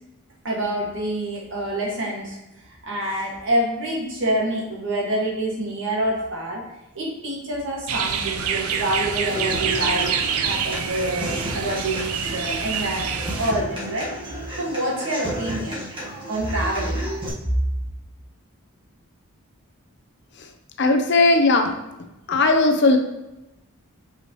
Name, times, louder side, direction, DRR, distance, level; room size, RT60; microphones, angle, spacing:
voice 1, 0.4-6.7 6.9-14.2 14.6-15.8 16.3-17.1, right 1 dB, 55° right, -3 dB, 1.8 m, -27 dB
sound 1, 7.9-13.5, right 6 dB, 80° right, 0.6 m, -26 dB
Human voice / Acoustic guitar, 9.3-17.3, right 1 dB, 20° right, 1.5 m, -33 dB
voice 2, 20.8-21.7 22.3-23.0, left 3 dB, 50° left, 5 dB, 0.7 m, -17 dB
6.3 x 5.5 x 3.0 m, 0.94 s
head